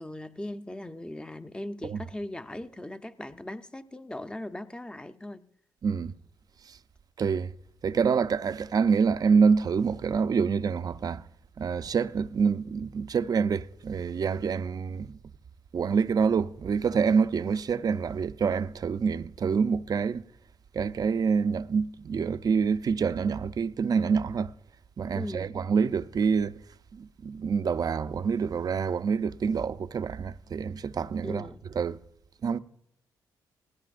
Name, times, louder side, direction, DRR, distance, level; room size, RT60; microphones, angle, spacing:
voice 1, 0.0-5.4 25.1-25.5 31.2-31.6, left 1 dB, 10° left, 0.7 m, -39 dB
voice 2, 5.8-6.1 7.2-7.5 7.8-11.2 11.6-15.2 15.7-20.2 20.7-24.5 25.0-26.6 26.9-31.5 31.7-32.0 32.4-32.6, right 6 dB, 50° right, 0.5 m, -26 dB
18.5 x 16.5 x 2.5 m
cardioid pair, 70°, 8 cm